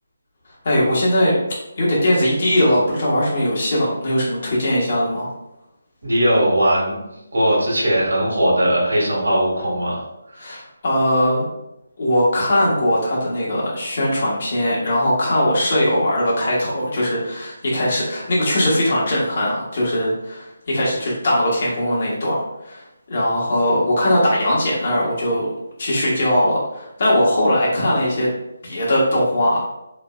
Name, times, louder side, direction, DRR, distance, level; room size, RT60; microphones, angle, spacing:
voice 1, 0.6-1.3 1.8-5.3 10.4-11.5 12.0-22.8 23.1-25.5 25.8-28.3 28.6-29.6, left 1 dB, 45° left, -5 dB, 1.1 m, -20 dB
voice 2, 6.0-7.0 7.3-10.0, equal, 85° right, -4 dB, 1.4 m, -19 dB
3.0 x 2.6 x 2.3 m, 0.90 s
figure-of-eight pair, 165°, 0 cm